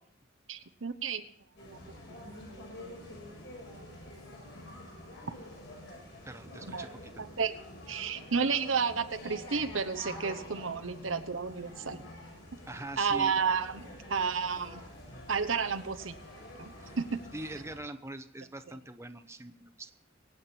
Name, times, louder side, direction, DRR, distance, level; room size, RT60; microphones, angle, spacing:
voice 1, 0.5-1.2 1.7-1.8 2.8-3.0 6.6-6.8 7.2-7.5 7.9-12.0 13.0-14.8 15.3-16.1 16.6-17.2, right 5 dB, 85° right, 10 dB, 1.0 m, -31 dB
sound 1, 1.6-17.8, left 1 dB, 65° left, 7.0 m, -47 dB
voice 2, 6.2-7.2 12.7-13.3 16.8-16.9 17.3-19.9, right 2 dB, 15° right, 8 dB, 0.9 m, -43 dB
24.0 x 8.7 x 4.4 m, 0.65 s
head